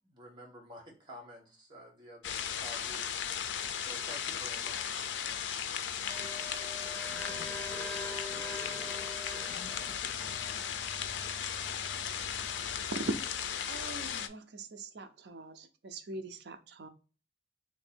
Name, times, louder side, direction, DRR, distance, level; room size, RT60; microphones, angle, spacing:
voice 1, 0.0-3.0 3.5-5.0, equal, 25° right, 1.3 m, -50 dB
sound 1, 2.2-14.3, left 8 dB, 85° left, 0.4 m, -36 dB
sound 2, 6.1-13.0, left 1 dB, 10° left, 0.5 m, -45 dB
voice 2, 7.0-9.0 9.3-10.4, left 2 dB, 70° left, 1.0 m, -51 dB
voice 3, 13.7-16.9, right 2 dB, 65° right, 0.5 m, -40 dB
3.2 x 2.6 x 4.2 m
head